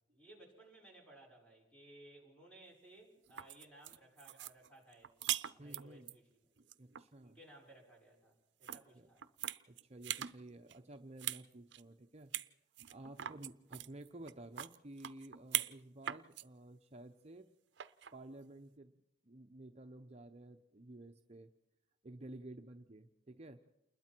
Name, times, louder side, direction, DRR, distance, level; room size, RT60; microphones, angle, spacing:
voice 1, 0.1-5.3 5.5-6.3 7.2-9.2 13.2-13.3, right 1 dB, 5° left, -1 dB, 6.3 m, -60 dB
sound 1, 3.2-6.1 6.6-7.0 8.6-8.8 9.2-10.3 10.7-11.4 11.7-11.8 12.3-12.5 12.8-15.8 16.0-16.4 17.8-18.2, right 12 dB, 70° right, 0.6 m, -41 dB
voice 2, 5.6-6.2 6.6-7.4 8.9-9.1 9.7-12.3 12.9-17.5 18.1-21.5 22.0-23.6, right 1 dB, 35° right, 5 dB, 0.8 m, -53 dB
28.5 x 21.0 x 4.6 m, 0.88 s
head